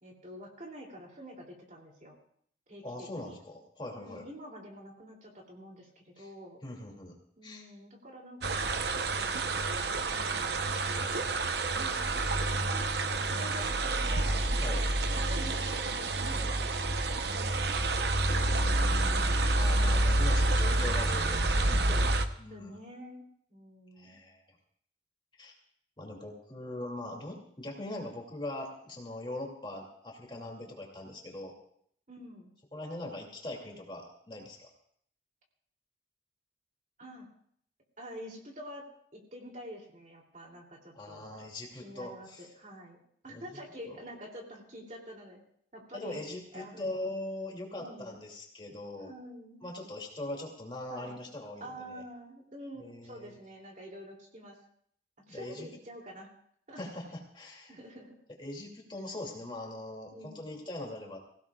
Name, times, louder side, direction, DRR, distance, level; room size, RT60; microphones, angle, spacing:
voice 1, 0.0-2.2 2.7-3.4 3.9-6.6 7.4-9.4 9.9-10.4 11.0-11.1 11.7-12.0 12.6-12.9 13.3-17.5 18.2-18.6 20.8-21.1 21.5-22.1 22.5-24.2 32.1-32.5 37.0-37.3 38.0-38.9 39.1-41.3 41.8-45.4 45.7-46.2 46.5-46.9 47.8-48.2 49.0-49.6 50.9-51.2 51.6-54.6 55.3-56.3 56.7-56.8 57.7-58.2 60.1-60.6, equal, 45° right, 0 dB, 3.0 m, -47 dB
voice 2, 2.8-4.2 6.2-6.3 6.6-7.7 14.6-14.8 18.3-21.7 22.4-22.8 24.0-24.4 25.4-25.5 26.0-31.5 32.7-34.7 40.9-42.5 43.3-43.6 43.8-44.0 45.9-49.1 49.6-52.0 52.8-53.3 55.3-55.7 56.8-57.8 58.4-61.2, left 1 dB, 25° left, 0 dB, 2.6 m, -41 dB
sound 1, 8.4-22.2, right 2 dB, 65° right, 0.9 m, -28 dB
24.5 x 16.5 x 2.4 m, 0.65 s
head